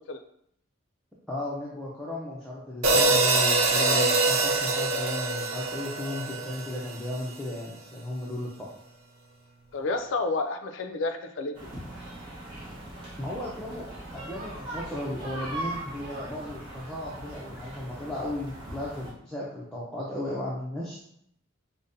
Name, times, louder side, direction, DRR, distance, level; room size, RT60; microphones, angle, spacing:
voice 1, 1.3-8.7 13.2-21.0, left 1 dB, 5° left, -7 dB, 0.5 m, -35 dB
sound 1, 2.8-7.2, right 3 dB, 85° right, 0.6 m, -24 dB
voice 2, 9.7-11.7, left 3 dB, 65° left, 6 dB, 0.4 m, -30 dB
sound 2, 11.5-19.1, right 1 dB, 25° right, 1.1 m, -40 dB
5.1 x 2.1 x 2.6 m, 0.71 s
head